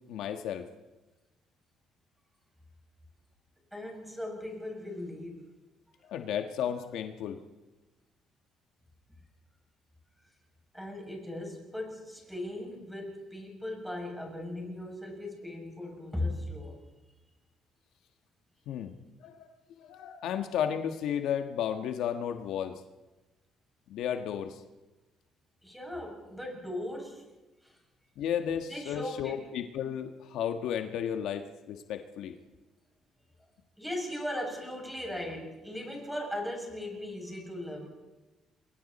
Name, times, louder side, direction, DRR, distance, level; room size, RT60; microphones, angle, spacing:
voice 1, 0.1-0.7 6.1-7.4 18.7-18.9 19.2-19.5 19.8-22.8 23.9-24.6 28.2-32.4, left 9 dB, 80° left, 6 dB, 1.5 m, -33 dB
voice 2, 3.7-5.5 10.7-16.8 25.6-27.2 27.6-27.8 28.7-29.4 33.8-37.9, left 1 dB, ahead, 1 dB, 7.2 m, -38 dB
27.5 x 23.5 x 4.3 m, 1.1 s
cardioid pair, 125°, 0 cm